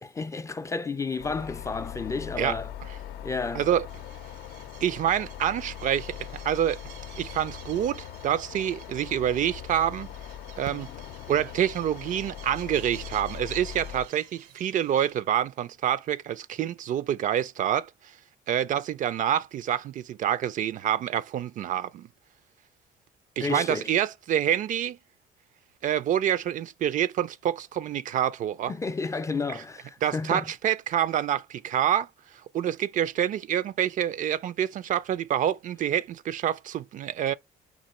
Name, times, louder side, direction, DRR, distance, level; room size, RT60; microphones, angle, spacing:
voice 1, 0.0-2.7 3.2-3.7 23.4-23.9 28.7-30.4, left 4 dB, 20° left, 0.4 m, -31 dB
sound 1, 1.2-14.1, left 10 dB, 75° left, 0.5 m, -41 dB
voice 2, 3.5-3.9 4.8-6.8 7.2-10.1 10.6-10.9 11.3-17.9 18.5-22.1 23.4-25.0 25.8-28.7 29.5-29.6 30.0-32.1 32.5-37.3, right 10 dB, 50° right, 0.4 m, -27 dB
sound 2, 3.9-15.2, right 9 dB, 90° right, 0.9 m, -50 dB
3.9 x 2.9 x 4.2 m
cardioid pair, 110°, 17 cm